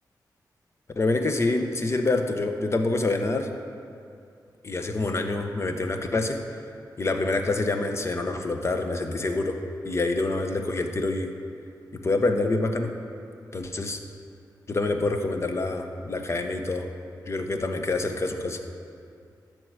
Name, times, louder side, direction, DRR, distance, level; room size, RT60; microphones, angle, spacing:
voice 1, 1.0-3.5 4.6-6.4 7.0-9.6 9.8-11.3 12.0-12.9 13.5-14.0 14.7-16.9 17.2-18.6, left 2 dB, 40° left, 5 dB, 0.9 m, -26 dB
12.5 x 4.6 x 8.0 m, 2.4 s
wide cardioid pair, 90°, 7 cm